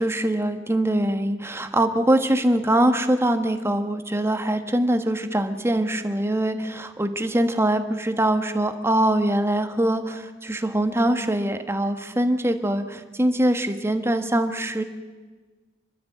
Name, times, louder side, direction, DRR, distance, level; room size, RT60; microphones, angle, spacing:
voice 1, 0.0-14.8, right 1 dB, 15° right, 7 dB, 1.3 m, -23 dB
26.0 x 12.5 x 8.2 m, 1.3 s
head